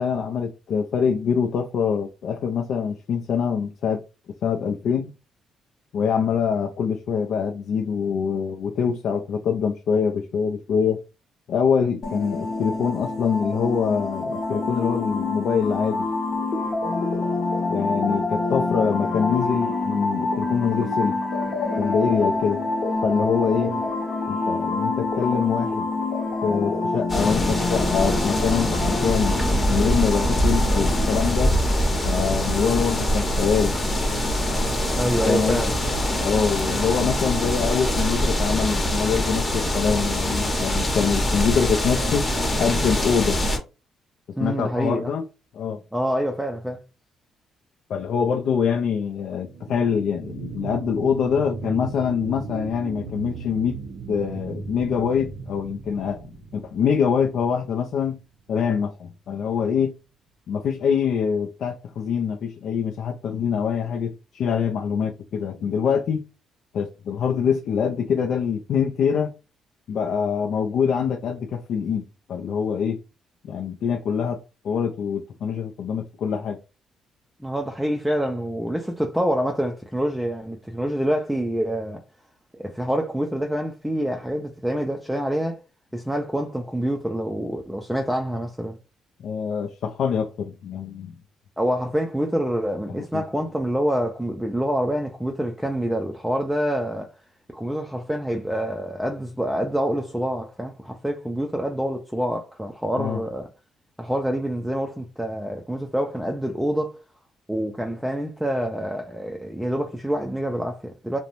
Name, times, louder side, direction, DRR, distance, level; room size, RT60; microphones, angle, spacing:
voice 1, 0.0-4.0 4.4-5.1 5.9-11.0 11.5-16.1 17.7-21.2 21.7-22.6 23.0-23.7 24.3-25.9 26.4-29.4 29.7-31.5 32.1-33.7 35.2-35.6 36.2-42.3 42.6-43.4 44.4-45.3 45.5-45.8 47.9-53.8 54.1-58.2 58.5-59.9 60.5-66.2 66.7-69.3 69.9-73.0 73.4-74.4 74.6-76.6 89.2-91.2 93.1-93.2 103.0-103.2, left 7 dB, 70° left, 0.3 m, -24 dB
sound 1, 12.0-31.2, left 3 dB, 55° left, 0.7 m, -27 dB
sound 2, 27.1-43.6, equal, 20° left, 0.7 m, -23 dB
voice 2, 34.9-35.8 44.4-45.1 45.9-46.8 77.4-82.0 82.5-85.6 85.9-88.8 91.6-97.1 97.5-103.5 104.0-107.0 107.5-111.2, equal, 5° right, 0.4 m, -26 dB
sound 3, 49.2-58.2 58.7-58.8, right 5 dB, 70° right, 0.5 m, -37 dB
2.5 x 2.0 x 2.9 m
cardioid pair, 90°, 0 cm